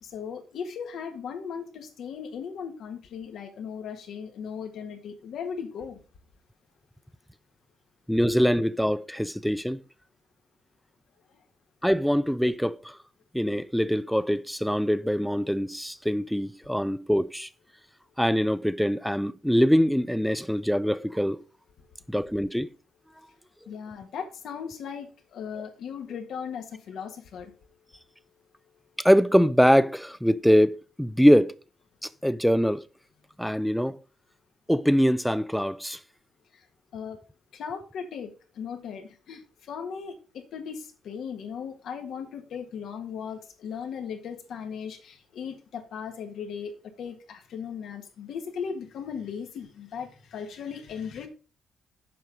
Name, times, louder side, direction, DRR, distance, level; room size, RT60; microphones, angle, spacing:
voice 1, 0.0-6.0 23.7-27.5 36.5-36.6 36.9-37.2 37.5-46.7 47.0-51.3, left 7 dB, 70° left, 1.6 m, -37 dB
voice 2, 8.1-9.8 11.8-13.0 13.3-17.5 18.2-21.4 22.1-22.7 29.0-31.6 32.0-32.8 33.4-34.0 34.7-36.0, equal, ahead, 0.5 m, -23 dB
7.7 x 5.5 x 5.0 m
cardioid pair, 90°, 0 cm